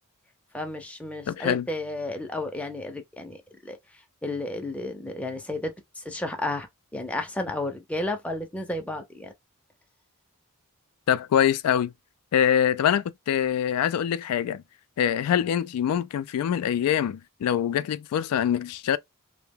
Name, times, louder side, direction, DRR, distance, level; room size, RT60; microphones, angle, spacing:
voice 1, 0.5-3.8 4.2-6.7 6.9-9.3, left 2 dB, 5° left, 0.5 m, -32 dB
voice 2, 1.3-1.7 11.1-11.9 12.3-14.6 15.0-19.0, left 9 dB, 80° left, 0.3 m, -24 dB
2.7 x 2.1 x 3.4 m
head